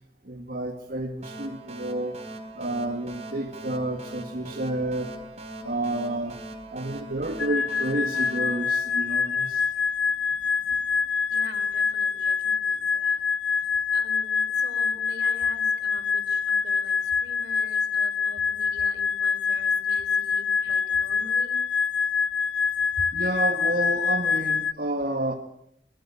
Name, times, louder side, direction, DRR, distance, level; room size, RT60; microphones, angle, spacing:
voice 1, 0.3-2.2 2.6-5.2 5.6-6.4 6.7-9.7 19.9-20.0 20.6-20.7 23.1-25.3, right 1 dB, 50° right, 3 dB, 1.9 m, -30 dB
sound 1, 1.2-9.6, right 1 dB, 35° right, 4.1 m, -41 dB
sound 2, 7.4-24.7, left 6 dB, 80° left, 0.9 m, -25 dB
voice 2, 11.3-13.2 13.9-21.6, right 2 dB, 75° right, 7 dB, 4.8 m, -46 dB
26.0 x 21.5 x 7.1 m, 0.74 s
head